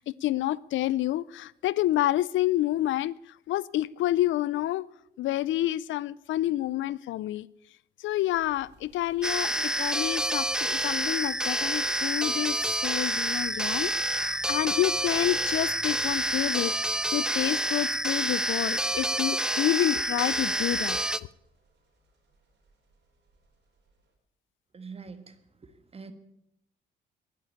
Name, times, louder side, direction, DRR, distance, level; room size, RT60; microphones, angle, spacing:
voice 1, 0.0-4.9 5.2-7.5 8.0-21.3, left 14 dB, 75° left, 0.4 m, -29 dB
sound 1, 8.3-24.1, right 1 dB, 60° right, 4.8 m, -57 dB
sound 2, 9.2-21.2, right 1 dB, 5° right, 0.4 m, -28 dB
voice 2, 24.7-25.3 25.6-26.1, right 5 dB, 30° right, 1.6 m, -44 dB
11.0 x 11.0 x 8.4 m
cardioid pair, 90°, 20 cm